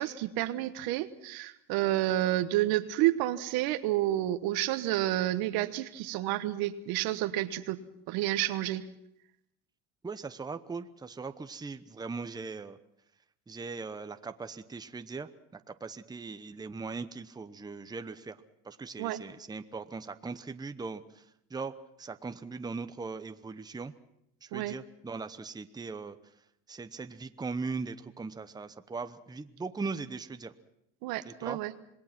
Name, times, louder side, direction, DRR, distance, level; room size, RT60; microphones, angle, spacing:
voice 1, 0.0-7.8 8.1-8.8 19.0-19.2 24.5-24.7 31.0-31.7, right 15 dB, 75° right, 11 dB, 1.3 m, -30 dB
voice 2, 10.0-12.8 13.5-18.4 18.6-21.2 21.5-23.9 24.4-26.2 26.7-30.5 31.2-31.6, right 4 dB, 10° right, 9 dB, 0.9 m, -39 dB
26.5 x 20.0 x 6.0 m, 0.78 s
cardioid pair, 115°, 37 cm